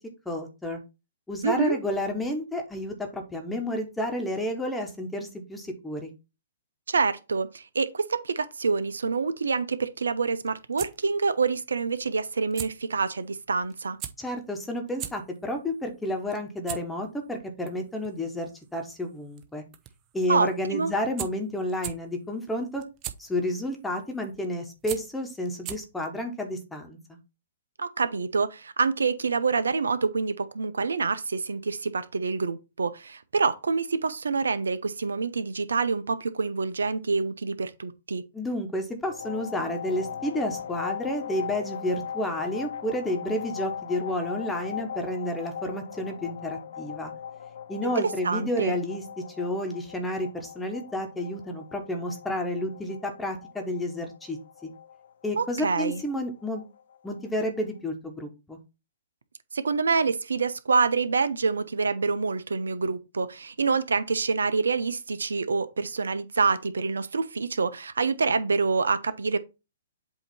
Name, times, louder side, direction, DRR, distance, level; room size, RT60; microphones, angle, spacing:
voice 1, 0.2-0.8 1.3-6.1 14.2-19.6 20.1-22.8 23.2-27.2 38.3-47.1 47.7-49.0 49.4-54.7 55.2-56.6 57.0-58.6, left 1 dB, 5° left, 1.2 m, -31 dB
voice 2, 1.4-1.8 6.9-14.0 20.3-20.9 27.8-38.2 48.0-48.8 55.4-56.0 59.5-69.4, right 4 dB, 85° right, 0.7 m, -26 dB
sound 1, 10.2-26.1, right 11 dB, 30° right, 0.7 m, -42 dB
sound 2, 39.0-57.6, left 8 dB, 70° left, 0.8 m, -39 dB
7.9 x 2.9 x 4.4 m
hypercardioid pair, 130°, 0 cm